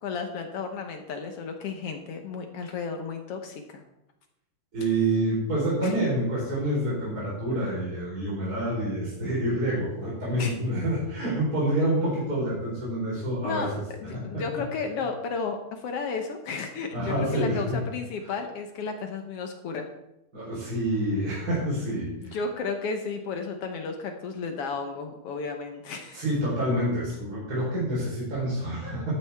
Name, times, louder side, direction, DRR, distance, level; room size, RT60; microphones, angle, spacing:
voice 1, 0.0-3.8 5.8-5.9 10.4-10.6 13.4-19.9 22.2-26.2, left 4 dB, 75° left, 5 dB, 1.3 m, -33 dB
voice 2, 4.7-13.8 14.1-14.4 16.9-17.8 20.3-22.4 26.1-29.1, right 1 dB, 25° right, -7 dB, 4.4 m, -27 dB
13.5 x 11.5 x 3.5 m, 0.89 s
omnidirectional pair, 4.1 m